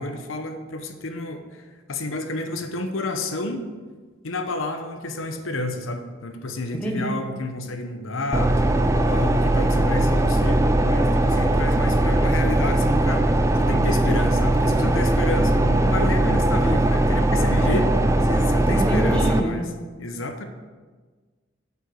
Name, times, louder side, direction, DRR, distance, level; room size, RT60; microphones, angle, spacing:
voice 1, 0.0-3.7 4.2-8.7 8.9-17.9 18.2-19.6 20.0-20.5, left 2 dB, 90° left, 6 dB, 0.8 m, -30 dB
voice 2, 6.7-7.1 17.6-17.7 18.7-19.7, right 1 dB, 5° left, -1 dB, 1.3 m, -26 dB
sound 1, 8.3-19.4, right 1 dB, 15° right, 0.3 m, -20 dB
7.6 x 5.7 x 6.3 m, 1.4 s
head